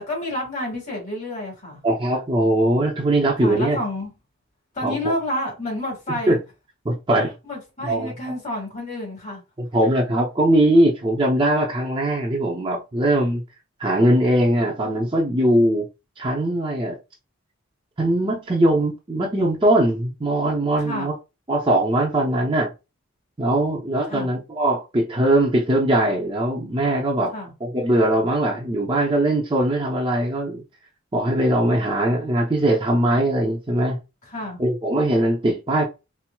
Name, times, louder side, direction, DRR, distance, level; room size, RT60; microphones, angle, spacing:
voice 1, 0.1-1.8 3.4-4.1 4.7-6.4 7.4-9.4 20.8-21.1 23.7-23.8 24.1-24.3 27.3-27.5 34.3-34.6, left 1 dB, 35° left, 1.7 m, -29 dB
voice 2, 1.8-3.8 4.8-4.9 6.3-6.4 6.8-7.3 7.8-8.1 9.6-13.4 13.8-15.9 16.2-16.9 18.0-21.1 21.5-22.7 23.4-27.3 27.6-30.6 31.1-34.0 34.6-35.9, right 1 dB, 20° right, 0.6 m, -20 dB
4.3 x 2.0 x 2.2 m
head